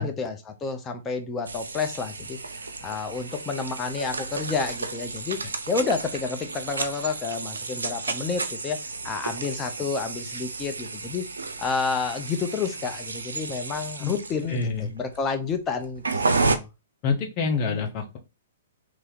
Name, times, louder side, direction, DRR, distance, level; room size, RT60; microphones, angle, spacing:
voice 1, 0.0-2.4 2.8-5.4 5.7-8.8 9.0-11.3 11.6-16.7, left 5 dB, 20° left, 0.7 m, -30 dB
sound 1, 1.4-16.6, right 3 dB, 80° right, 0.5 m, -32 dB
voice 2, 14.5-14.9 17.0-18.2, left 5 dB, 35° left, 1.0 m, -26 dB
3.1 x 2.8 x 3.8 m
figure-of-eight pair, 120°, 0 cm